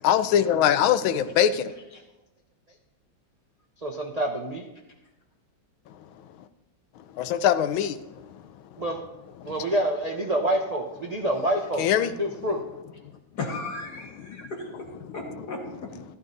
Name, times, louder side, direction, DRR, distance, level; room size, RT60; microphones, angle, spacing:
voice 1, 0.0-1.7 7.2-8.0 11.8-12.1, left 9 dB, 90° left, 1.4 m, -22 dB
voice 2, 3.8-4.7 8.8-9.0 9.4-12.6, right 1 dB, 85° right, 0.3 m, -27 dB
voice 3, 13.4-14.9 15.1-15.9, left 3 dB, 55° left, 2.0 m, -35 dB
15.5 x 12.0 x 2.7 m
omnidirectional pair, 2.2 m